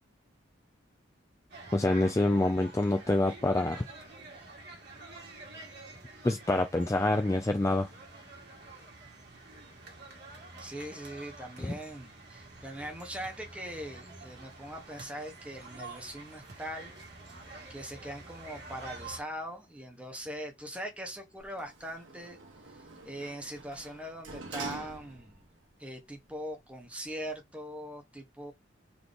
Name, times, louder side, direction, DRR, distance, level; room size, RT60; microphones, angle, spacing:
sound 1, 1.5-19.2, right 2 dB, 55° right, 1.8 m, -48 dB
voice 1, 1.7-3.8 6.2-7.9 11.6-11.7, left 2 dB, 15° left, 0.3 m, -26 dB
voice 2, 10.6-16.9 17.7-22.4 22.7-25.4 25.8-28.5, equal, 5° right, 1.0 m, -41 dB
Sliding door, 21.4-25.5 26.0-26.1, right 3 dB, 85° right, 1.3 m, -45 dB
4.1 x 2.9 x 3.4 m
head